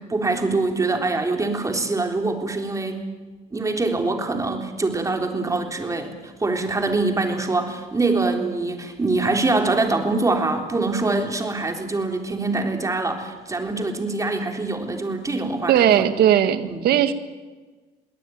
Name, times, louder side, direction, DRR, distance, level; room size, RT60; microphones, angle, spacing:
voice 1, 0.1-3.1 3.5-15.9 16.6-16.8, right 3 dB, 20° right, 4 dB, 3.7 m, -24 dB
voice 2, 15.7-17.1, right 10 dB, 70° right, 11 dB, 1.8 m, -18 dB
22.0 x 18.0 x 9.4 m, 1.3 s
cardioid pair, 110°, 17 cm